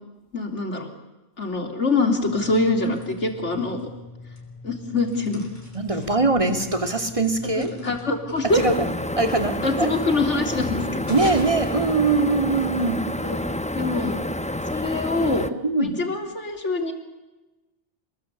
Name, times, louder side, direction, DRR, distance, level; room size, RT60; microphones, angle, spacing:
voice 1, 0.3-0.9 1.4-3.8 4.6-5.5 7.5-8.7 9.6-11.1 13.2-13.4 13.7-14.2 14.7-15.5 15.8-16.9, left 3 dB, 75° left, 4 dB, 3.7 m, -24 dB
sound 1, 2.1-12.6, left 2 dB, 40° left, 6.4 m, -41 dB
voice 2, 5.7-7.7 8.5-9.9 11.1-13.0 15.6-15.9, right 3 dB, 25° right, 5 dB, 2.8 m, -22 dB
sound 2, 8.5-15.5, left 1 dB, 5° left, 0.8 m, -29 dB
28.0 x 20.5 x 8.4 m, 1.1 s
omnidirectional pair, 1.2 m